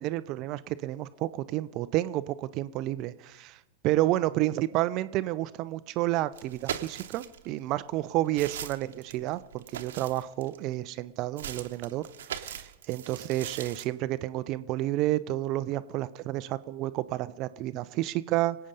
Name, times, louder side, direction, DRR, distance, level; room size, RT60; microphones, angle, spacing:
voice 1, 0.0-3.6 3.8-12.0 12.3-18.6, right 16 dB, 40° right, 15 dB, 0.6 m, -30 dB
sound 1, 6.3-7.5 8.0-10.7 11.4-13.9, right 10 dB, 60° right, 1.1 m, -40 dB
25.0 x 8.6 x 5.3 m, 0.95 s
figure-of-eight pair, 90°, 0 cm